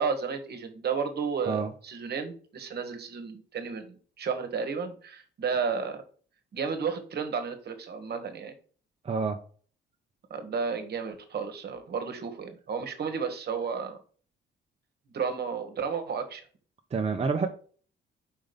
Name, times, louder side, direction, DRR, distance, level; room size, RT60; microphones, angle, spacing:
voice 1, 0.0-6.0 6.5-8.5 10.3-14.0 15.1-16.4, right 5 dB, 55° right, 7 dB, 1.3 m, -32 dB
voice 2, 9.0-9.4 16.9-17.5, right 5 dB, 30° right, 3 dB, 0.7 m, -27 dB
5.1 x 3.9 x 5.1 m, 0.43 s
cardioid pair, 90°, 20 cm